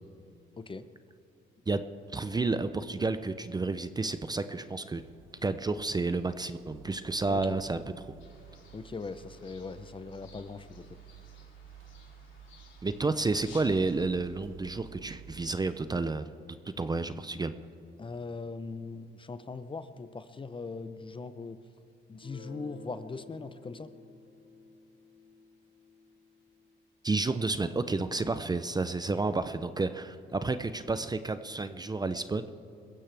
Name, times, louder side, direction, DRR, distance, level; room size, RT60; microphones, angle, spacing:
voice 1, 0.6-0.9 7.3-7.6 8.7-11.0 18.0-21.6 22.1-23.9, left 4 dB, 25° left, 12 dB, 0.7 m, -40 dB
voice 2, 2.1-5.0 5.4-8.1 12.8-16.2 16.6-17.5 27.0-32.5, right 3 dB, 20° right, 11 dB, 0.6 m, -31 dB
sound 1, 4.9-15.6, right 10 dB, 80° right, 0.8 m, -53 dB
sound 2, 8.2-14.2, left 5 dB, 70° left, 3.3 m, -57 dB
Guitar, 22.1-27.6, left 3 dB, 55° left, 4.5 m, -53 dB
22.0 x 16.0 x 3.4 m, 2.8 s
cardioid pair, 90°, 20 cm